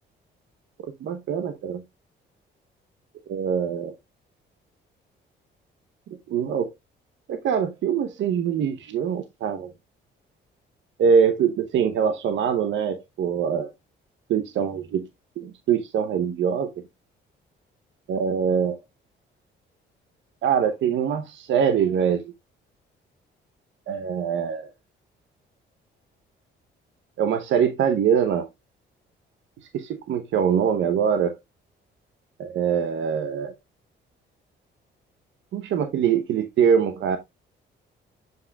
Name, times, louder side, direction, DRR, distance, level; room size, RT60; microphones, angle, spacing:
voice 1, 1.0-1.8 3.3-3.9 6.3-6.7 7.3-9.7 11.0-13.7 14.3-15.0 15.4-16.7 18.1-18.8 20.4-22.2 23.9-24.7 27.2-28.5 29.7-31.4 32.4-33.5 35.5-37.2, right 7 dB, 70° right, 0.8 m, -23 dB
7.5 x 5.7 x 2.2 m
cardioid pair, 90°, 20 cm